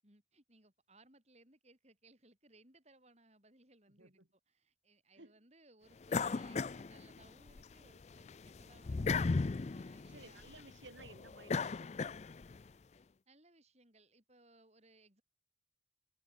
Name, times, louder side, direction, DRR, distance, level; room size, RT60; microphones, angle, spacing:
voice 1, 0.0-9.2 9.7-10.4 13.3-15.2, right 2 dB, 35° right, 7.5 m, -65 dB
voice 2, 4.0-4.3 5.2-5.4 10.1-12.1, right 2 dB, 80° right, 4.8 m, -57 dB
sound 1, 6.1-7.6 8.0-12.6, left 4 dB, 35° left, 0.4 m, -37 dB
head